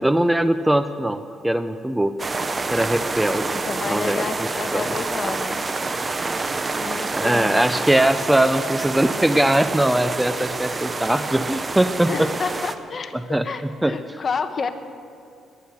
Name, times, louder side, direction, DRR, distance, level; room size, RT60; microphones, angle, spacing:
voice 1, 0.0-2.2 2.7-3.6 3.9-4.3 4.7-4.8 7.1-12.3 13.1-13.5 13.8-14.2, right 1 dB, 5° right, 11 dB, 0.5 m, -21 dB
sound 1, 2.2-12.8, right 3 dB, 30° right, 0.9 m, -27 dB
voice 2, 3.5-5.6 6.8-7.7 12.1-13.2 13.4-14.7, left 5 dB, 40° left, 8 dB, 1.2 m, -30 dB
18.5 x 11.5 x 6.5 m, 2.4 s
cardioid pair, 95°, 0 cm